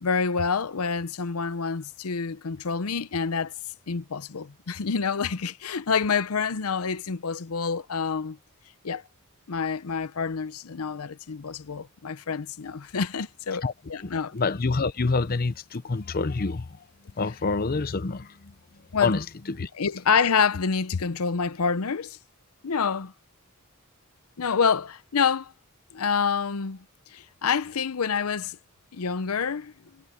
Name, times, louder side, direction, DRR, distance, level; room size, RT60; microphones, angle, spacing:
voice 1, 0.0-3.5 3.9-8.4 8.8-9.0 9.5-14.3 18.9-19.1 19.8-22.2 22.6-23.1 24.4-25.5 25.9-26.8 27.1-28.6 28.9-29.7, left 5 dB, 90° left, 0.7 m, -27 dB
voice 2, 14.0-16.9 17.2-19.7, left 3 dB, 45° left, 0.6 m, -28 dB
head